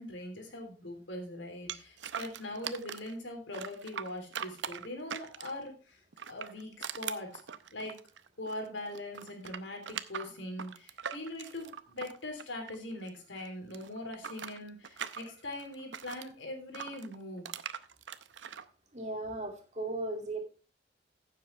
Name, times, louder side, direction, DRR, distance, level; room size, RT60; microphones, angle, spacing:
voice 1, 0.0-6.0 6.3-7.4 7.7-8.0 8.4-17.5, left 1 dB, 85° left, 3 dB, 3.3 m, -41 dB
sound 1, 1.7-3.1 3.5-5.7 6.1-8.7 8.9-13.1 13.4-16.3 16.7-18.6, right 8 dB, 85° right, 0.7 m, -41 dB
voice 2, 18.9-20.4, right 2 dB, 40° right, 2 dB, 2.4 m, -36 dB
15.0 x 7.6 x 3.3 m, 0.35 s
head